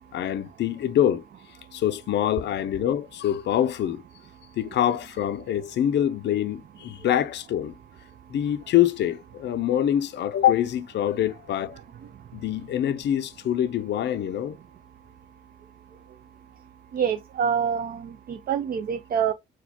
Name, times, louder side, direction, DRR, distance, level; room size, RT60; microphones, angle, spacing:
voice 1, 0.1-1.2 1.7-4.0 4.6-7.8 8.3-11.8 12.3-14.6, left 11 dB, 65° left, 0.4 m, -25 dB
voice 2, 16.9-19.3, right 7 dB, 50° right, 0.4 m, -26 dB
4.0 x 2.2 x 2.8 m
cardioid pair, 70°, 20 cm